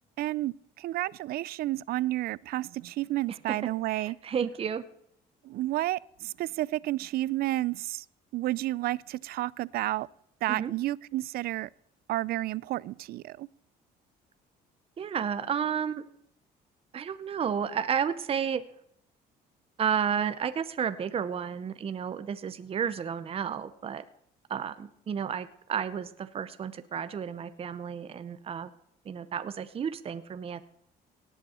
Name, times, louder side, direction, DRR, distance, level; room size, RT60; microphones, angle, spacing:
voice 1, 0.2-4.2 5.4-8.0 8.3-10.1 10.4-11.7 12.1-13.5, right 16 dB, 65° right, 0.4 m, -31 dB
voice 2, 3.9-4.8 10.5-10.7 15.0-16.0 16.9-18.6 19.8-24.0 24.5-28.7 29.0-30.7, right 7 dB, 35° right, 0.7 m, -32 dB
18.0 x 8.2 x 4.3 m
cardioid pair, 110°, 17 cm